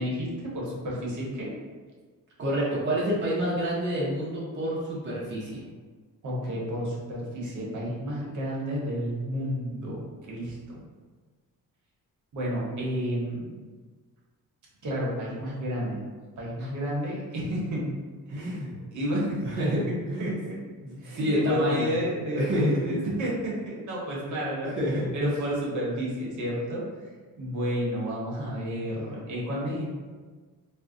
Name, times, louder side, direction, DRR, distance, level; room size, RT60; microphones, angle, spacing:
voice 1, 0.0-1.5 6.2-10.8 12.3-13.5 14.8-16.0 16.4-18.0 18.3-18.6 18.9-19.5 19.9-20.6 21.0-24.8 25.1-26.8 27.4-29.9, equal, 60° right, -4 dB, 0.9 m, -31 dB
voice 2, 2.4-5.6 18.3-18.7 19.4-19.8 20.1-20.3 20.8-21.9 22.3-23.0 24.1-24.4 24.6-25.3, equal, 35° right, -7 dB, 0.5 m, -28 dB
2.5 x 2.0 x 3.6 m, 1.4 s
cardioid pair, 150°, 34 cm